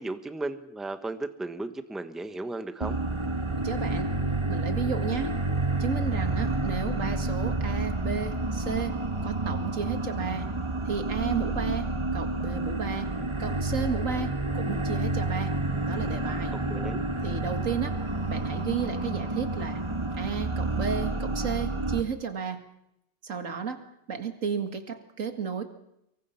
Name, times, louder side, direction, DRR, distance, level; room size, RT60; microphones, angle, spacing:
voice 1, 0.0-2.9 16.7-17.0, right 2 dB, ahead, 9 dB, 0.8 m, -35 dB
sound 1, 2.8-22.0, right 2 dB, 15° right, 1.2 m, -29 dB
voice 2, 3.6-4.1 4.5-5.3 5.8-8.9 9.2-10.5 10.9-13.1 13.4-15.5 15.9-16.5 17.2-18.0 18.3-19.8 20.2-22.6 23.2-23.8 24.1-25.6, right 6 dB, 40° right, 7 dB, 2.1 m, -33 dB
24.5 x 23.0 x 5.9 m, 0.83 s
omnidirectional pair, 2.3 m